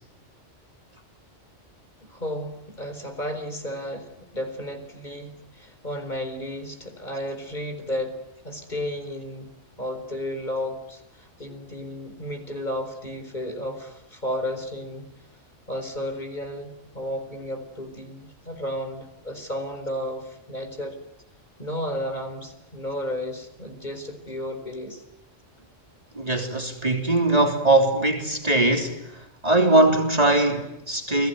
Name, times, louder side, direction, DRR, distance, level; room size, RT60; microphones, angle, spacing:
voice 1, 2.0-9.5 9.8-15.1 15.7-21.0 21.6-25.0, left 1 dB, 35° left, 4.6 m, -33 dB
voice 2, 26.2-31.3, right 2 dB, 30° right, 3.4 m, -21 dB
29.5 x 20.5 x 9.4 m
omnidirectional pair, 1.3 m